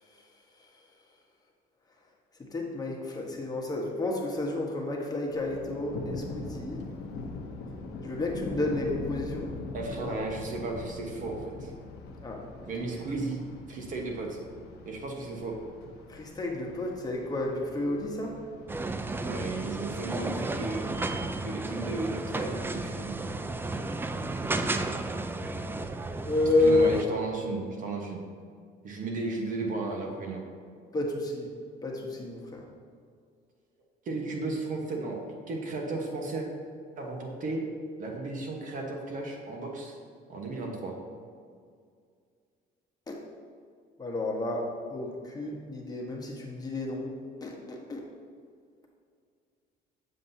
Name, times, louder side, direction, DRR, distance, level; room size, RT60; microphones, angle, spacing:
voice 1, 2.5-6.8 8.0-9.5 12.2-12.4 16.1-18.3 24.4-24.8 26.2-26.9 30.9-31.5 31.8-32.6 43.1-43.2 44.0-44.6 44.9-47.1 47.4-48.0, left 2 dB, 20° left, -1 dB, 1.2 m, -30 dB
Thunder, 5.2-21.2, left 3 dB, 80° left, 0.9 m, -42 dB
voice 2, 9.7-11.7 12.7-13.4 13.7-14.4 14.8-15.6 19.2-20.8 21.4-23.3 26.6-28.2 28.8-30.5 34.0-36.5 37.0-37.6 38.0-40.0 40.3-41.0, right 2 dB, 50° right, 1 dB, 1.2 m, -34 dB
sound 1, 18.7-27.0, right 2 dB, 15° right, 0.3 m, -33 dB
7.7 x 7.3 x 2.7 m, 2.2 s
cardioid pair, 110°, 17 cm